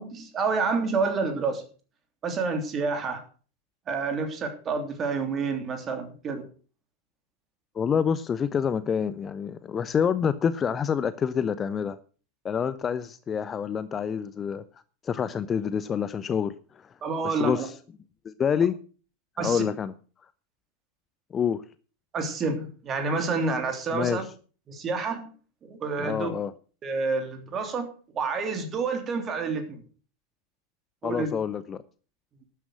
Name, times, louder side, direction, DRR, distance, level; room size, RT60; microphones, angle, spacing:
voice 1, 0.0-1.6 2.2-3.2 3.9-6.5 17.0-17.7 19.4-19.6 22.1-24.2 24.7-25.3 25.6-26.3 26.8-27.9 28.1-29.8 31.0-31.3, right 4 dB, 25° right, 7 dB, 3.2 m, -28 dB
voice 2, 7.7-12.0 12.4-14.6 15.0-16.9 17.2-17.7 18.2-18.8 19.4-19.9 21.3-21.6 23.9-24.2 26.0-26.5 31.0-31.8, left 7 dB, 20° left, 15 dB, 0.6 m, -27 dB
12.5 x 9.2 x 6.3 m, 0.39 s
figure-of-eight pair, 90°, 0 cm